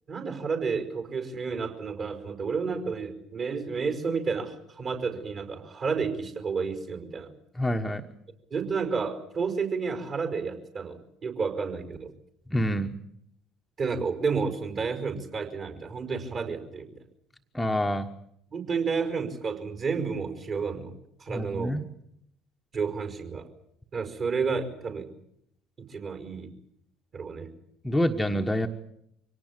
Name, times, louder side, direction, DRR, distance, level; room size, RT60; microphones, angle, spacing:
voice 1, 0.1-7.3 8.5-12.1 13.8-16.9 18.5-20.9 21.2-21.7 22.7-23.5 23.9-25.1 25.9-26.5 27.1-27.5, right 5 dB, 40° right, 6 dB, 5.1 m, -31 dB
voice 2, 7.5-8.0 12.5-12.9 17.5-18.1 21.3-21.8 27.8-28.7, equal, 5° left, 4 dB, 1.4 m, -27 dB
25.5 x 18.0 x 8.9 m, 0.73 s
figure-of-eight pair, 60°, 0 cm